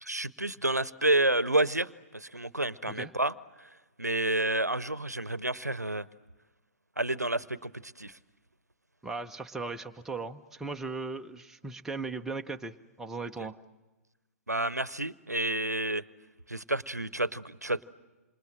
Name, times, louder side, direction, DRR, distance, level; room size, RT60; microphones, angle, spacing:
voice 1, 0.0-3.3 4.0-6.0 7.0-8.1 14.5-16.0 16.5-17.8, right 1 dB, 90° right, 19 dB, 0.8 m, -29 dB
voice 2, 9.0-13.6, right 3 dB, 5° right, 4 dB, 0.8 m, -38 dB
27.5 x 27.0 x 7.6 m, 1.2 s
figure-of-eight pair, 120°, 9 cm